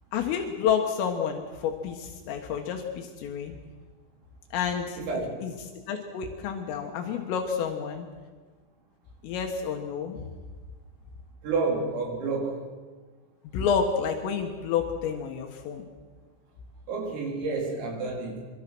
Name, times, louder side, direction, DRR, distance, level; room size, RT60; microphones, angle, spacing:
voice 1, 0.1-3.6 4.5-5.0 5.4-5.5 5.9-8.1 9.2-10.2 13.5-15.9, left 7 dB, 80° left, 3 dB, 4.1 m, -29 dB
voice 2, 5.0-5.4 11.4-12.7 16.9-18.4, right 3 dB, 90° right, 0 dB, 6.9 m, -30 dB
26.0 x 23.5 x 6.2 m, 1.4 s
omnidirectional pair, 5.8 m